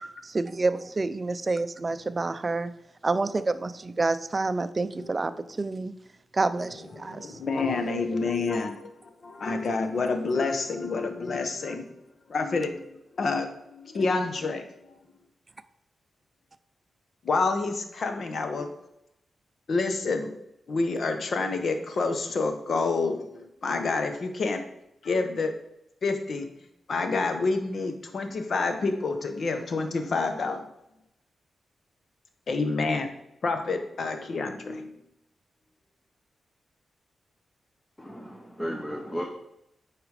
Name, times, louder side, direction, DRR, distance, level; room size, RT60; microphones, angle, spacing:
voice 1, 0.3-2.7 3.0-5.3 5.6-5.9 6.3-7.4, right 3 dB, 35° right, 13 dB, 0.5 m, -28 dB
voice 2, 5.0-5.4 7.0-11.9 12.3-12.8 13.1-14.6 14.9-15.0 17.2-18.7 19.7-20.3 20.7-24.6 25.0-25.5 26.0-26.5 26.9-30.7 32.5-33.1 33.4-35.0, left 3 dB, 60° left, 7 dB, 1.1 m, -28 dB
voice 3, 38.0-39.2, equal, 15° left, 2 dB, 1.1 m, -34 dB
8.5 x 5.0 x 4.9 m, 0.82 s
cardioid pair, 80°, 0 cm